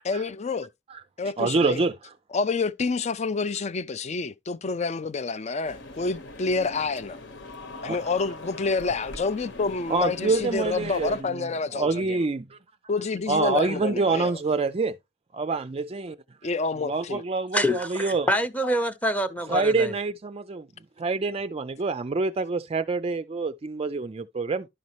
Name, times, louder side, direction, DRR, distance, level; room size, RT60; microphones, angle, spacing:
voice 1, 0.0-0.7 1.2-1.8 2.3-7.2 7.8-12.2 12.9-14.4 16.4-17.2, left 4 dB, 35° left, 0.4 m, -28 dB
voice 2, 1.4-1.9 7.9-8.0 9.9-12.6 13.3-15.0 15.3-16.2 16.8-18.3 19.5-20.7 21.0-24.7, right 3 dB, 30° right, 0.4 m, -26 dB
sound 1, 5.6-11.2, left 2 dB, 70° left, 1.3 m, -41 dB
voice 3, 17.5-19.9, equal, 10° left, 0.8 m, -26 dB
11.5 x 5.3 x 3.0 m
head